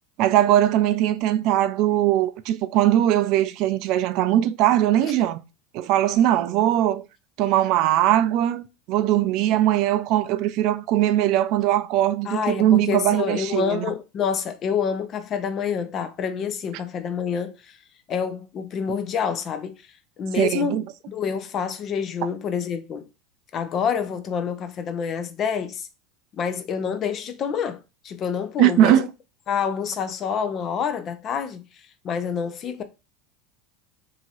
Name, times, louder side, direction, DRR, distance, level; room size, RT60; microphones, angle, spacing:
voice 1, 0.2-5.4 5.7-7.0 7.4-13.8 20.4-20.8 28.6-29.1, right 12 dB, 60° right, 0.3 m, -20 dB
voice 2, 12.2-17.8 18.1-19.8 20.2-23.1 23.5-25.9 26.4-29.1 29.5-31.6 32.0-32.8, left 7 dB, 40° left, 0.6 m, -27 dB
3.0 x 2.7 x 2.4 m
hypercardioid pair, 90°, 0 cm